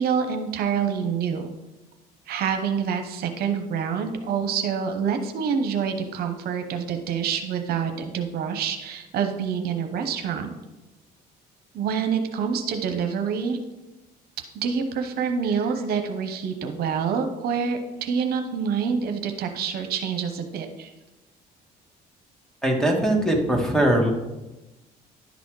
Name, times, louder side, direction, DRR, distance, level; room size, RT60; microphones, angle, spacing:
voice 1, 0.0-1.5 2.3-10.5 11.7-13.6 14.6-20.9, right 6 dB, 65° right, 6 dB, 0.8 m, -27 dB
voice 2, 22.6-24.1, right 1 dB, 5° left, 1 dB, 1.5 m, -21 dB
11.0 x 4.1 x 4.8 m, 1.0 s
cardioid pair, 110°, 17 cm